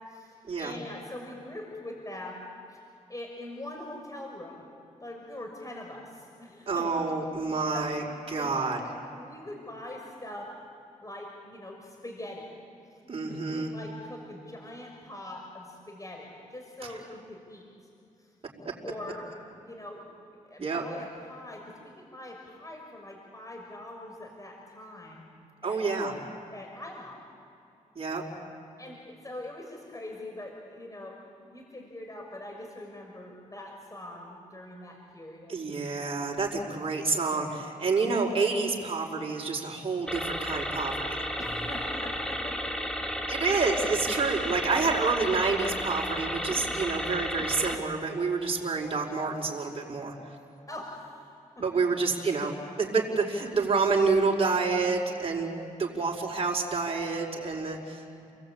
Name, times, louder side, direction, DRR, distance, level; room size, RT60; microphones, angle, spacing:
voice 1, 0.0-2.8 3.1-4.6 5.0-6.9 7.4-10.5 11.0-12.5 13.0-17.6 18.2-20.2 20.4-25.3 25.6-27.2 28.8-35.6 41.4-43.1 50.7-51.8, left 1 dB, 25° left, 1 dB, 6.1 m, -43 dB
voice 2, 6.7-8.0 8.3-8.8 13.1-13.7 20.6-20.8 25.6-26.1 27.9-28.2 35.5-41.2 43.3-50.1 51.6-55.5 55.8-58.3, right 4 dB, 45° right, -1 dB, 5.0 m, -28 dB
sound 1, 40.1-47.8, equal, 5° left, 3.1 m, -33 dB
30.0 x 20.5 x 8.9 m, 2.6 s
cardioid pair, 55°, 14 cm